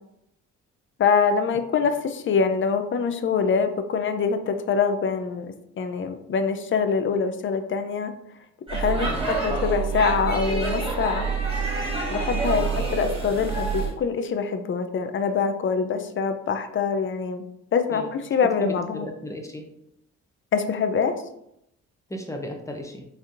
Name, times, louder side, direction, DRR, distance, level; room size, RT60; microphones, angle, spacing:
voice 1, 1.0-5.5 5.8-8.1 8.7-9.1 9.4-11.3 12.1-12.7 12.9-17.4 17.7-19.1 20.5-21.1, left 6 dB, 40° left, 8 dB, 0.5 m, -24 dB
Speech / Shout / Subway metro underground, 8.7-13.9, right 4 dB, 20° right, 1.7 m, -27 dB
voice 2, 12.5-12.9 17.9-18.1 18.6-19.7 22.1-23.1, left 1 dB, 10° left, 3 dB, 0.8 m, -35 dB
5.2 x 3.4 x 2.6 m, 0.78 s
cardioid pair, 90°, 30 cm